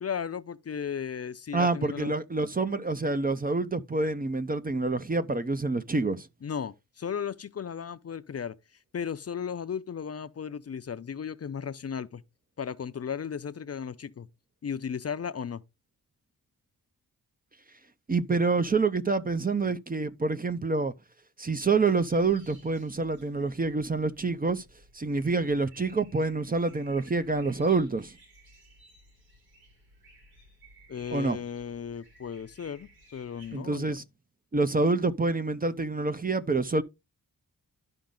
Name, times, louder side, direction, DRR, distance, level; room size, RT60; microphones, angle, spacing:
voice 1, 0.0-2.1 6.4-8.6 8.9-12.2 12.6-14.3 14.6-15.6 30.9-34.0, left 7 dB, 40° left, 0.6 m, -35 dB
voice 2, 1.5-6.3 18.1-20.9 21.4-24.6 24.9-28.1 31.1-31.4 33.5-34.0 34.5-36.8, right 3 dB, 25° right, 0.6 m, -27 dB
sound 1, 21.8-33.6, right 1 dB, 80° right, 6.8 m, -57 dB
12.0 x 5.2 x 3.8 m
wide cardioid pair, 140°, 37 cm